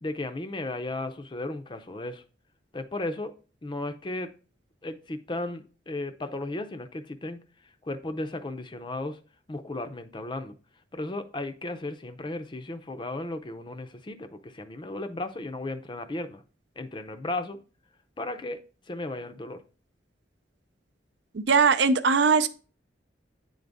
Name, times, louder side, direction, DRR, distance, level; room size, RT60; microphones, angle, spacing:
voice 1, 0.0-2.2 2.7-3.3 3.6-4.3 4.8-7.4 7.8-9.2 9.5-10.6 10.9-16.4 16.8-17.6 18.2-18.6 18.9-19.6, left 2 dB, 25° left, 0.5 m, -35 dB
voice 2, 21.3-22.5, right 5 dB, 65° right, 0.5 m, -20 dB
9.4 x 3.9 x 3.5 m
head